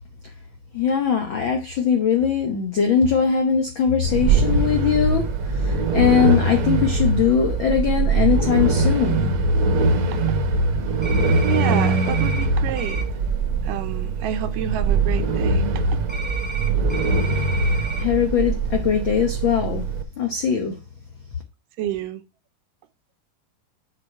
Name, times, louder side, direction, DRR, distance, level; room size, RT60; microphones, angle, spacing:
voice 1, 0.7-9.4 18.0-19.9 20.2-20.8, left 7 dB, 80° left, 1.0 m, -21 dB
sound 1, 4.0-20.0, right 3 dB, 60° right, 1.4 m, -22 dB
sound 2, 11.0-12.5 12.8-13.0 16.1-18.0, right 3 dB, 5° right, 1.3 m, -33 dB
voice 2, 11.4-13.1 13.6-15.7 21.8-22.2, right 11 dB, 90° right, 2.4 m, -28 dB
7.8 x 5.2 x 4.3 m
omnidirectional pair, 3.7 m